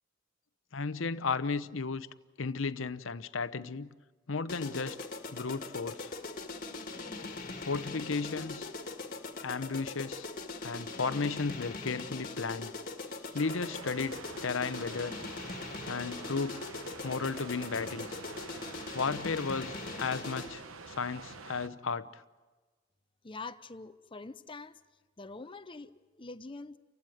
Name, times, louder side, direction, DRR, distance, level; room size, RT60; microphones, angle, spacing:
voice 1, 0.7-2.1 2.4-3.9 4.3-5.0 5.3-6.1 7.6-8.7 9.4-10.3 10.6-12.7 13.3-15.2 15.9-16.6 17.0-18.2 18.9-22.2, left 4 dB, 70° left, 0.8 m, -34 dB
sound 1, 4.5-20.7, left 3 dB, 40° left, 1.8 m, -41 dB
sound 2, 10.5-11.4 12.4-13.4 14.7-15.6 16.8-17.9 18.7-20.2, right 2 dB, 55° right, 5.9 m, -63 dB
sound 3, 13.4-21.7, right 4 dB, 85° right, 1.1 m, -47 dB
voice 2, 23.2-24.8 25.2-26.8, left 3 dB, 25° left, 0.7 m, -45 dB
30.0 x 16.5 x 9.1 m
head